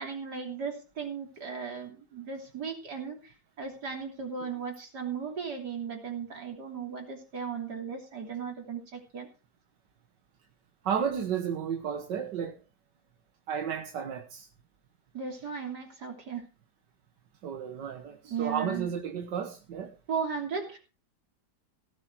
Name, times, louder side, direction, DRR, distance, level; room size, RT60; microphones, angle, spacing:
voice 1, 0.0-9.3 15.1-16.4 18.2-18.9 20.1-20.8, right 6 dB, 70° right, 3.7 m, -36 dB
voice 2, 10.8-12.6 13.5-14.5 17.4-19.9, right 7 dB, 90° right, 1.8 m, -33 dB
16.5 x 8.0 x 4.7 m
omnidirectional pair, 1.8 m